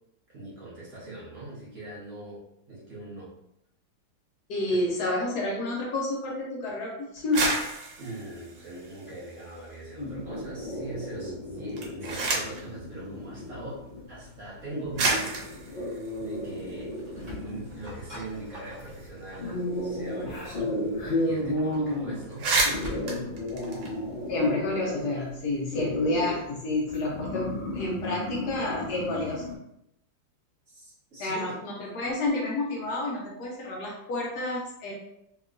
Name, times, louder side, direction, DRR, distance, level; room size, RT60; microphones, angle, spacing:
voice 1, 0.3-2.4 2.7-3.3 4.7-4.8 8.0-15.4 15.6-22.5 30.7-31.5, right 2 dB, 50° right, -7 dB, 1.2 m, -41 dB
voice 2, 4.5-7.5 24.3-29.4 31.2-34.9, left 2 dB, 70° left, -3 dB, 1.1 m, -29 dB
sound 1, 7.2-9.7 10.1-10.8 11.6-12.7 13.7-13.8 14.5-14.6 15.0-17.3 17.6-17.7 18.0-20.6 20.9-21.0 21.3-21.5 21.9-22.0 22.2-24.4, right 3 dB, 75° right, 1.4 m, -32 dB
sound 2, 10.0-29.5, left 1 dB, 45° left, 0.6 m, -34 dB
sound 3, 16.8-19.6 21.2-23.4, left 1 dB, 25° right, 0.9 m, -45 dB
2.9 x 2.8 x 2.4 m, 0.80 s
omnidirectional pair, 2.0 m